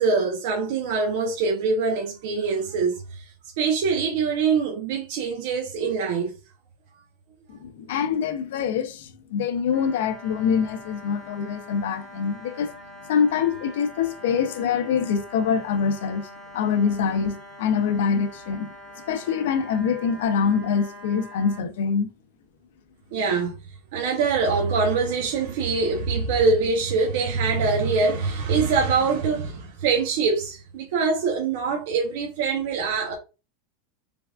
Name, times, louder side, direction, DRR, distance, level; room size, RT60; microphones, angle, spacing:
voice 1, 0.0-3.2 3.6-6.3 23.1-23.6 23.9-33.1, right 4 dB, 70° right, 0.8 m, -24 dB
voice 2, 7.5-12.8 13.1-18.7 19.1-22.1, left 6 dB, 80° left, 0.6 m, -25 dB
sound 1, 9.7-21.6, equal, 20° right, 1.4 m, -44 dB
3.4 x 3.4 x 2.4 m
supercardioid pair, 135°, 0 cm